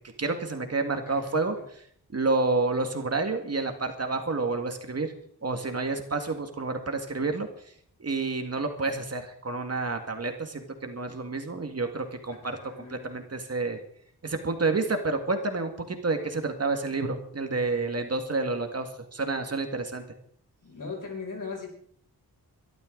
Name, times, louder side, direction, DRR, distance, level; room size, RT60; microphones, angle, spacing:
voice 1, 0.2-1.6 2.1-5.1 5.4-7.5 8.0-12.6 12.9-13.8 14.2-20.0, right 3 dB, 40° right, 5 dB, 2.0 m, -29 dB
voice 2, 1.0-1.4 12.4-13.2 20.6-21.7, left 4 dB, 55° left, 1 dB, 6.2 m, -39 dB
23.5 x 13.0 x 3.9 m, 0.62 s
wide cardioid pair, 140°, 38 cm